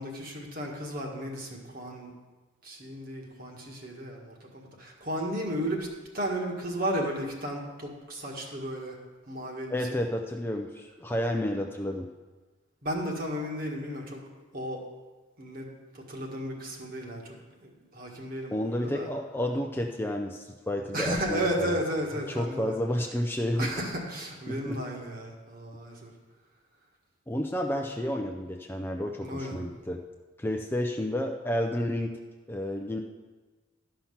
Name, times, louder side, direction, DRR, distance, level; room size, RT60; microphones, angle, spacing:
voice 1, 0.0-2.1 2.6-5.9 6.1-9.0 9.3-9.8 12.8-14.2 14.5-14.8 15.4-15.7 15.9-17.2 17.6-19.1 20.9-22.8 23.6-26.1 29.2-29.7, equal, 45° right, 0 dB, 1.6 m, -34 dB
voice 2, 9.7-12.1 18.5-21.8 22.3-23.7 24.5-24.8 27.3-30.0 30.4-32.2 32.5-33.0, left 1 dB, 10° left, 3 dB, 0.4 m, -31 dB
12.0 x 5.8 x 5.7 m, 1.3 s
head